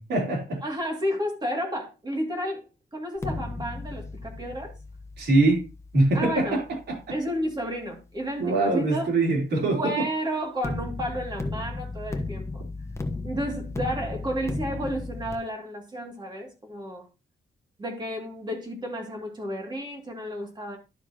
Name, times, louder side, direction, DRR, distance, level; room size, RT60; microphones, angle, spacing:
voice 1, 0.0-0.6 5.2-5.7 5.9-7.2 8.4-10.0, right 2 dB, 85° right, 3.5 m, -23 dB
voice 2, 0.6-4.7 6.1-6.6 7.1-9.1 9.7-12.6 13.2-17.1 17.8-20.8, equal, 25° right, 2.5 m, -32 dB
sound 1, 3.2-8.2 10.6-15.3, left 3 dB, 15° left, 1.1 m, -35 dB
11.5 x 6.7 x 2.9 m
wide cardioid pair, 150°, 17 cm